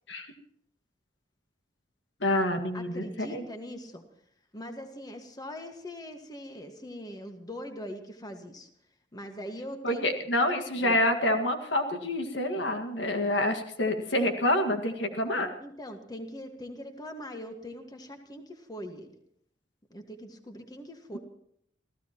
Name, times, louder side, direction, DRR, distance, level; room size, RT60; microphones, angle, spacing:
voice 1, 2.2-3.4 9.8-15.5, left 1 dB, 85° left, 5 dB, 1.9 m, -27 dB
voice 2, 2.7-4.0 4.5-8.7 9.1-10.1 10.8-11.0 15.6-19.1 19.9-21.2, equal, 20° left, 5 dB, 1.6 m, -41 dB
27.5 x 16.0 x 3.0 m, 0.68 s
head